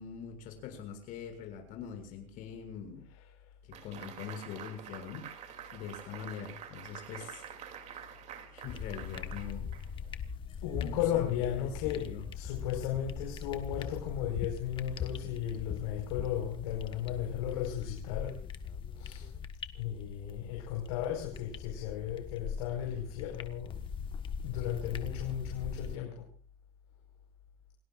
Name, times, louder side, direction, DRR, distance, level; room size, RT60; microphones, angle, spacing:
voice 1, 0.0-3.1 3.7-7.4 8.5-9.6 10.8-12.2, left 7 dB, 50° left, 6.7 m, -43 dB
sound 1, 3.7-10.2, right 9 dB, 40° right, 2.9 m, -47 dB
sound 2, 8.7-26.0, left 7 dB, 30° left, 1.3 m, -41 dB
voice 2, 10.6-18.4 19.0-19.3 19.7-23.8 24.4-26.3, left 10 dB, 80° left, 4.9 m, -35 dB
29.0 x 18.5 x 2.5 m
cardioid pair, 145°, 18 cm